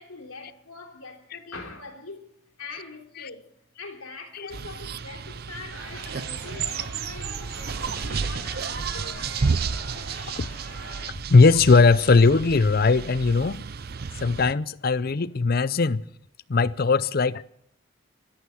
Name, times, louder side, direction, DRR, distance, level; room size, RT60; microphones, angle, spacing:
voice 1, 0.0-2.3 2.6-3.5 3.8-9.2, left 3 dB, 85° left, 3.3 m, -42 dB
sound 1, 4.5-14.5, right 5 dB, 45° right, 0.5 m, -32 dB
Chatter, 5.7-11.0, right 1 dB, 65° right, 7.9 m, -41 dB
voice 2, 11.3-13.7 14.2-16.0 16.5-17.4, left 4 dB, 45° left, 0.5 m, -19 dB
14.5 x 13.0 x 7.7 m
head